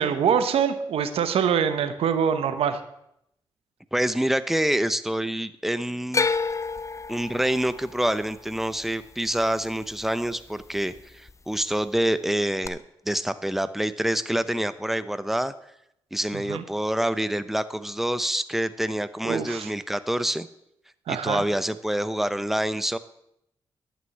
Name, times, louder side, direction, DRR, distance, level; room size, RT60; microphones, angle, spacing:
voice 1, 0.0-2.8 16.5-16.6 19.2-19.7 21.1-21.4, right 7 dB, 85° right, 10 dB, 1.0 m, -24 dB
voice 2, 3.9-6.3 7.1-12.8 13.1-15.5 16.1-20.5 21.1-23.0, right 1 dB, 5° right, 13 dB, 0.8 m, -26 dB
sound 1, 6.1-10.3 10.6-11.3 12.6-12.7, left 4 dB, 30° left, 0.7 m, -30 dB
11.0 x 6.2 x 8.5 m, 0.78 s
supercardioid pair, 50°, 10 cm